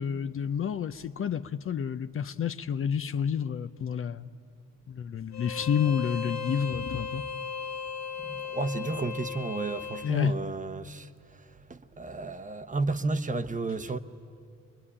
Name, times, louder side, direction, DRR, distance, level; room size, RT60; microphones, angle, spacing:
voice 1, 0.0-4.3 4.9-7.2 10.0-10.3, left 7 dB, 45° left, 0.7 m, -29 dB
Bowed string instrument, 5.3-10.1, left 6 dB, 65° left, 1.6 m, -36 dB
voice 2, 8.2-14.0, right 3 dB, 25° right, 1.0 m, -32 dB
22.5 x 22.5 x 10.0 m
cardioid pair, 90°, 30 cm